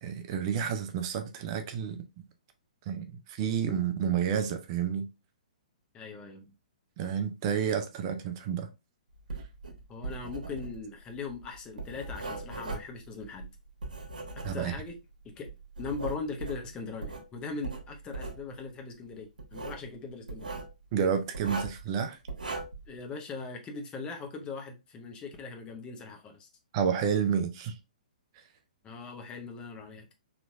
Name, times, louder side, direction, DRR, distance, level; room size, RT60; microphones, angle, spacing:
voice 1, 0.0-2.0 2.9-5.1 7.0-8.7 14.4-14.7 20.9-22.2 26.7-27.7, right 7 dB, 40° right, 0.5 m, -30 dB
voice 2, 5.9-6.5 9.9-13.5 14.4-14.9 15.2-20.6 22.9-26.5 28.8-30.1, left 4 dB, 20° left, 0.8 m, -40 dB
Writing, 9.2-15.0 15.5-17.3 17.6-18.4 19.4-19.8 20.3-20.7 21.3-21.9 22.3-22.9, right 3 dB, 75° right, 1.1 m, -39 dB
4.0 x 3.0 x 2.2 m
figure-of-eight pair, 120°, 4 cm